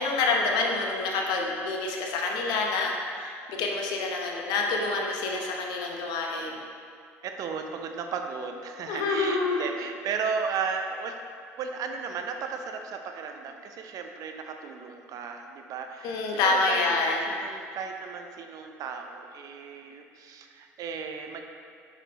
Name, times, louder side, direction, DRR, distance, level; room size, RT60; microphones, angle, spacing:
voice 1, 0.0-6.6 8.9-9.7 16.0-17.2, left 3 dB, 65° left, 0 dB, 0.9 m, -27 dB
voice 2, 7.2-11.2 11.6-21.4, right 5 dB, 55° right, 4 dB, 0.5 m, -35 dB
6.1 x 5.4 x 2.9 m, 2.2 s
hypercardioid pair, 65°, 7 cm